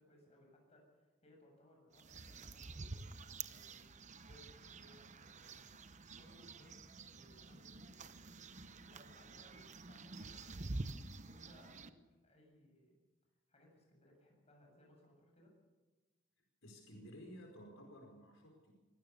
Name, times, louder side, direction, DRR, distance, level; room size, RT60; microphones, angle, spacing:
voice 1, 0.0-3.9 4.2-12.0 12.2-12.9 13.5-15.5, left 1 dB, 35° left, 1 dB, 7.3 m, -66 dB
sound 1, 1.9-11.9, right 3 dB, 35° right, 0.9 m, -49 dB
voice 2, 16.6-18.8, equal, 75° left, 1 dB, 4.8 m, -54 dB
23.5 x 16.5 x 6.8 m, 1.2 s
head